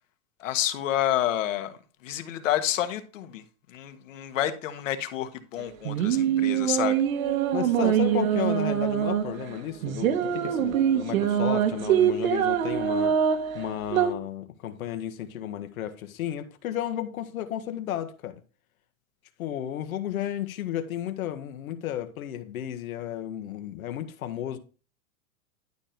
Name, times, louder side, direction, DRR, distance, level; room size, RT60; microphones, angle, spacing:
voice 1, 0.4-1.7 2.0-3.4 3.7-7.0, left 12 dB, 65° left, 1.6 m, -29 dB
sound 1, 5.6-14.1, right 9 dB, 70° right, 1.4 m, -24 dB
voice 2, 7.5-13.2 13.5-18.4 19.4-24.6, left 11 dB, 80° left, 1.6 m, -33 dB
11.5 x 4.5 x 5.1 m
supercardioid pair, 180°, 42 cm